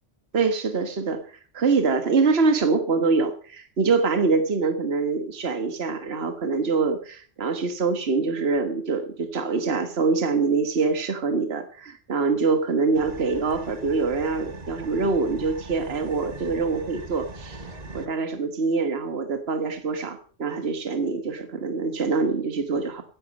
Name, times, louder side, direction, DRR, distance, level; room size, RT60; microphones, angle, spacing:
voice 1, 0.3-17.7 17.9-23.0, right 4 dB, 65° right, 7 dB, 1.7 m, -24 dB
sound 1, 12.9-18.1, right 2 dB, 35° right, 1.6 m, -41 dB
16.0 x 11.0 x 5.2 m, 0.44 s
omnidirectional pair, 1.2 m